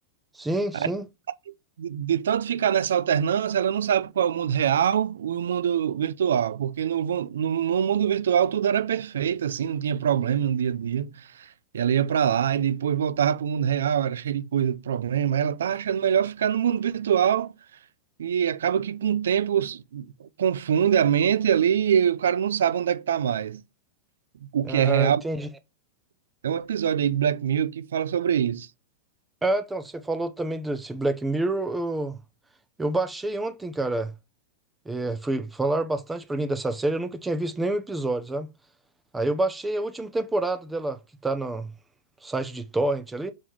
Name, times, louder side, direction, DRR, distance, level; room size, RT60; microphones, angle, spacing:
voice 1, 0.3-1.1 24.6-25.5 29.4-32.2 32.8-34.1 34.9-38.5 39.1-41.7 42.2-43.3, right 2 dB, 10° right, 0.8 m, -28 dB
voice 2, 1.8-11.5 11.7-17.5 18.2-23.6 24.4-25.2 26.4-28.7, right 9 dB, 85° right, 0.6 m, -24 dB
6.5 x 3.8 x 4.6 m
hypercardioid pair, 120°, 0 cm